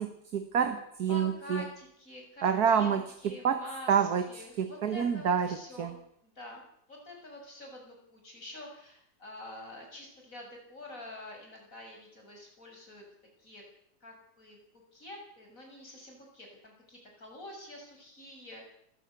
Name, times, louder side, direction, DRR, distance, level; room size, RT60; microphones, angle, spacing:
voice 1, 0.0-1.7 2.4-5.9, right 7 dB, 70° right, 8 dB, 1.9 m, -28 dB
voice 2, 1.1-6.6 6.9-13.0 13.4-13.6 14.0-14.7 14.9-18.7, left 1 dB, 55° left, 1 dB, 7.6 m, -47 dB
27.5 x 15.0 x 8.3 m, 0.73 s
omnidirectional pair, 1.7 m